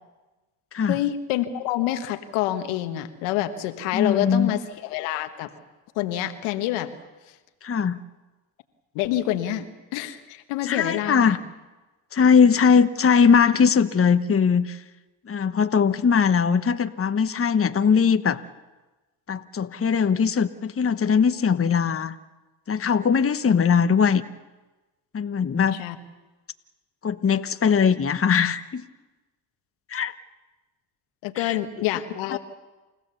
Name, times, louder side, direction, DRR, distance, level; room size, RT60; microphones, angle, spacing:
voice 1, 0.9-5.5 5.9-6.9 8.9-9.7 9.9-11.4 25.7-26.0 31.2-32.4, left 13 dB, 85° left, 8 dB, 1.4 m, -27 dB
voice 2, 3.9-4.5 7.6-8.0 10.6-11.4 12.1-14.8 15.3-18.4 19.3-22.1 22.7-24.2 25.1-25.8 27.0-28.8 29.9-30.1 31.4-31.6 32.3-32.4, left 6 dB, 30° left, 9 dB, 1.1 m, -20 dB
29.0 x 16.0 x 7.0 m, 1.2 s
supercardioid pair, 70°, 48 cm